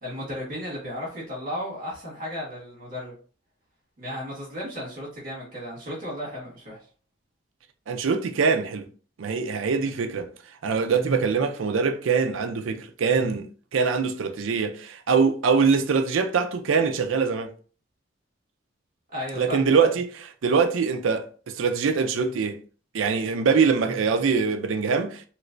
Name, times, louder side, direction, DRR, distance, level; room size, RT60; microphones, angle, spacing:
voice 1, 0.0-3.1 4.0-6.8 19.1-19.6, left 1 dB, 45° right, 1.5 m, -34 dB
voice 2, 7.9-8.8 9.2-10.3 10.6-17.5 19.4-22.6 22.9-25.2, right 5 dB, 80° right, 0.4 m, -23 dB
3.1 x 3.0 x 2.5 m
head